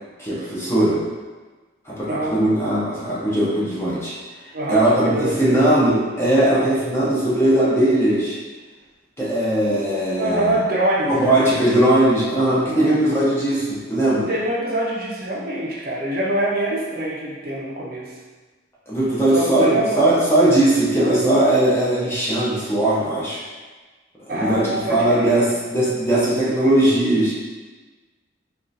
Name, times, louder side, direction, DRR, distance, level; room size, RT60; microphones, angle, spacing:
voice 1, 0.2-1.0 1.9-4.2 4.7-8.4 9.2-10.6 11.1-14.3 18.9-23.4 24.3-27.3, right 1 dB, 15° left, -8 dB, 0.7 m, -19 dB
voice 2, 2.1-2.4 4.5-5.6 9.7-9.8 10.2-11.5 12.7-12.9 14.3-18.1 19.3-20.0 24.3-25.5, right 1 dB, 50° right, -4 dB, 0.5 m, -24 dB
3.6 x 2.3 x 2.6 m, 1.3 s
head